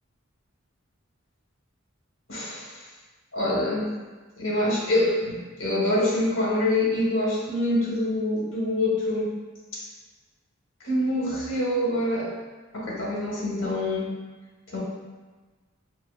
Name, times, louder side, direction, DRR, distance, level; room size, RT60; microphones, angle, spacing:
voice 1, 2.3-2.7 3.3-3.9 4.4-9.3 9.7-9.8 10.8-12.3 12.7-14.1 14.7-14.8, left 1 dB, 70° left, -4 dB, 1.0 m, -25 dB
5.7 x 2.4 x 2.3 m, 1.3 s
head